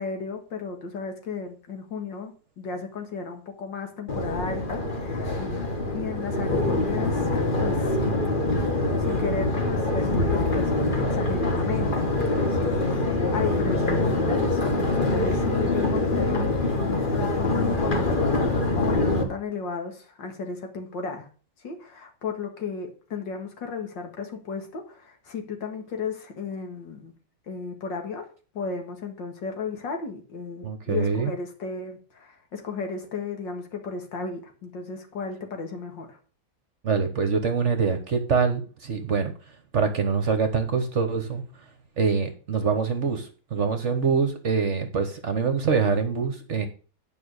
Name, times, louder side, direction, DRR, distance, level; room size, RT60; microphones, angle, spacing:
voice 1, 0.0-7.3 7.6-8.0 9.0-12.1 12.5-16.5 16.8-21.3 21.6-27.1 27.5-28.3 28.5-36.2, left 5 dB, 75° left, 4 dB, 2.5 m, -34 dB
Crowd, 4.1-19.2, left 2 dB, 30° left, 1.7 m, -24 dB
voice 2, 30.6-31.3 36.8-39.3 39.7-41.4 42.0-46.7, right 5 dB, 45° right, 7 dB, 1.2 m, -24 dB
9.5 x 5.4 x 6.4 m, 0.38 s
omnidirectional pair, 2.0 m